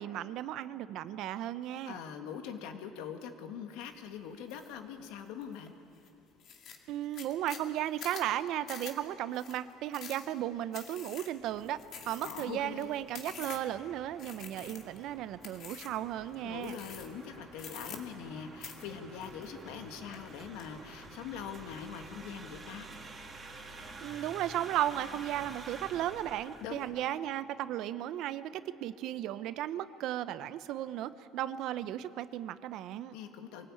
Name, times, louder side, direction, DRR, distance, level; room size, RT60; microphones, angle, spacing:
voice 1, 0.0-2.0 6.9-11.8 12.1-16.8 24.0-33.2, right 12 dB, 55° right, 14 dB, 0.7 m, -35 dB
voice 2, 1.9-5.7 12.2-12.9 16.4-22.9 26.6-26.9 33.1-33.7, left 7 dB, 75° left, 6 dB, 2.0 m, -43 dB
sound 1, 4.5-4.7 5.2-5.7 6.0-6.1 6.4-13.8 14.2-15.0 15.4-16.0 16.6-17.2 17.5-18.3 18.6-19.8 20.1-20.7, left 7 dB, 45° left, 2.2 m, -47 dB
sound 2, 11.4-27.0, right 3 dB, 20° right, 2.6 m, -50 dB
24.0 x 18.0 x 8.7 m, 2.7 s
cardioid pair, 150°, 0 cm